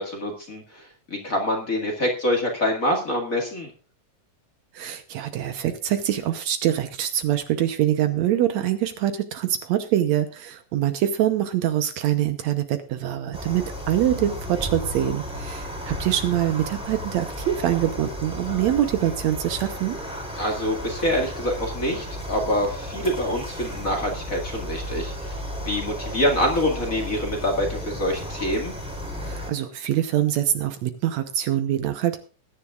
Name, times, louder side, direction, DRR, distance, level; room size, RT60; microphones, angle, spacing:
voice 1, 0.0-3.7 20.4-25.3 25.6-28.7, equal, 30° left, 2 dB, 2.0 m, -26 dB
voice 2, 4.7-20.0 29.2-32.2, right 12 dB, 70° right, 9 dB, 2.0 m, -24 dB
sound 1, 13.3-29.5, equal, ahead, 2.4 m, -34 dB
20.5 x 10.0 x 2.4 m, 0.37 s
omnidirectional pair, 3.5 m